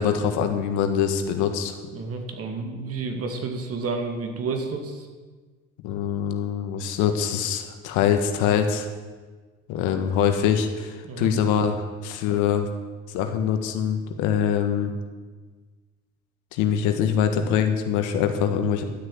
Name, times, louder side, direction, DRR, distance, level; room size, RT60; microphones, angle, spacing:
voice 1, 0.0-1.8 5.8-8.9 9.7-11.7 12.0-12.7 13.1-14.9 16.5-18.8, left 8 dB, 75° left, 7 dB, 1.6 m, -24 dB
voice 2, 1.9-5.1 11.0-11.3, right 4 dB, 50° right, 5 dB, 2.4 m, -30 dB
12.0 x 6.6 x 9.5 m, 1.4 s
supercardioid pair, 85°, 30 cm